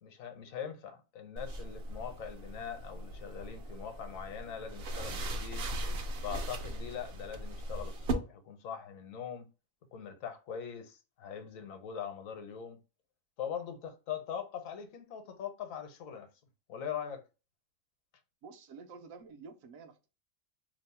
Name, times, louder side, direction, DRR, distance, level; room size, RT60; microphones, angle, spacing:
voice 1, 0.0-5.7 6.2-9.4 9.9-12.8 13.4-16.3 16.7-17.2, left 8 dB, 75° left, 1.1 m, -42 dB
sound 1, 1.4-8.1, right 1 dB, 60° right, 0.6 m, -39 dB
voice 2, 18.4-20.1, right 4 dB, 80° right, 1.0 m, -50 dB
2.9 x 2.0 x 4.1 m
omnidirectional pair, 1.4 m